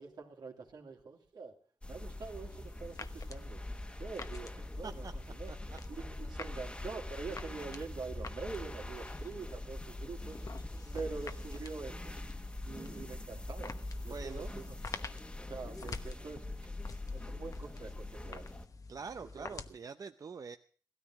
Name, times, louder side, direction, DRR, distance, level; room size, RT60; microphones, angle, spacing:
voice 1, 0.0-1.5 1.9-3.6 4.0-5.5 5.9-10.4 10.9-12.2 12.7-13.8 14.0-14.8 15.5-16.4 16.7-18.5 19.2-19.5, right 4 dB, 80° right, 2 dB, 2.7 m, -45 dB
sound 1, 1.8-18.7, left 1 dB, 15° left, 1.4 m, -43 dB
sound 2, 2.5-19.7, left 4 dB, 55° left, 1.0 m, -50 dB
voice 2, 14.1-14.5 18.9-20.6, right 5 dB, 55° right, 8 dB, 0.7 m, -44 dB
15.5 x 13.5 x 6.1 m, 0.44 s
cardioid pair, 75°, 7 cm